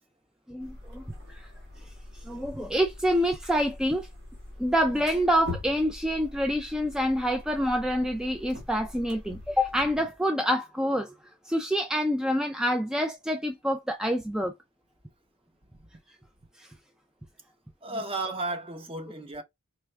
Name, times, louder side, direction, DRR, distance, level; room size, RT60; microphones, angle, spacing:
voice 1, 0.5-1.5 1.8-4.1 4.6-11.1 11.4-14.5 16.6-16.7, equal, 5° right, 0.3 m, -27 dB
sound 1, 0.6-10.0, left 2 dB, 55° right, 1.5 m, -43 dB
voice 2, 17.8-19.4, right 2 dB, 25° right, 0.7 m, -34 dB
4.5 x 2.1 x 3.2 m
head